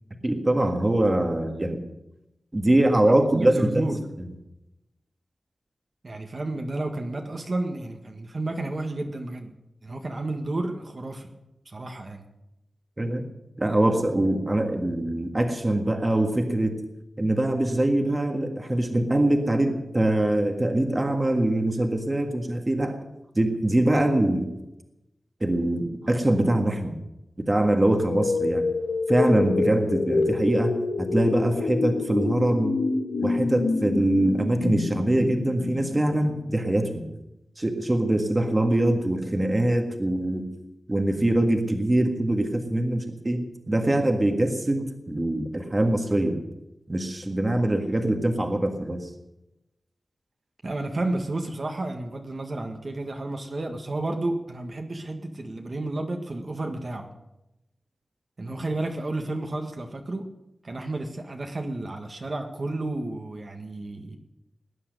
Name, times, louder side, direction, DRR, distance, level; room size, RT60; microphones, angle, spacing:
voice 1, 0.2-1.8 2.5-3.8 13.0-13.2 13.6-16.8 17.2-23.0 23.3-24.5 25.4-26.9 27.4-28.7 29.1-32.7 33.2-37.1 37.6-40.5 40.9-46.3 46.9-49.1, right 1 dB, 25° right, 5 dB, 1.7 m, -23 dB
voice 2, 3.1-4.1 6.0-9.5 9.8-11.3 11.6-12.2 50.6-57.1 58.4-60.3 60.6-64.2, right 2 dB, 45° right, 3 dB, 1.7 m, -31 dB
sound 1, 27.8-36.7, left 3 dB, 85° left, 1.5 m, -27 dB
19.5 x 10.0 x 6.7 m, 0.91 s
wide cardioid pair, 115°, 0 cm